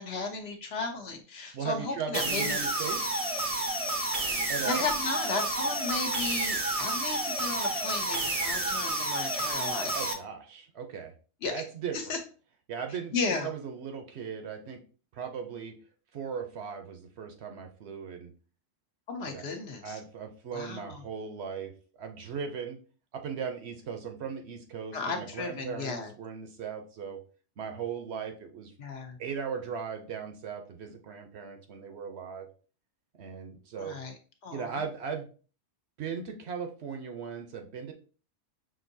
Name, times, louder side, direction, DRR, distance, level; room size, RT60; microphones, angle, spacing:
voice 1, 0.0-2.6 4.7-10.1 11.4-11.6 11.9-12.2 13.1-13.5 19.1-20.0 20.5-21.0 24.9-26.1 28.8-29.2 33.8-34.1 34.4-34.8, left 4 dB, 60° left, 4 dB, 0.9 m, -34 dB
voice 2, 1.5-3.3 4.5-4.9 9.9-11.1 11.4-12.2 12.7-13.1 13.4-14.8 15.1-15.8 16.1-18.3 19.2-19.5 19.8-22.8 23.1-27.2 27.6-28.7 29.2-32.5 33.2-34.0 34.5-35.3 36.0-37.9, right 6 dB, 65° right, 5 dB, 0.9 m, -38 dB
sound 1, 2.1-10.1, right 2 dB, 40° right, 0.5 m, -30 dB
5.9 x 2.6 x 2.6 m, 0.38 s
omnidirectional pair, 1.3 m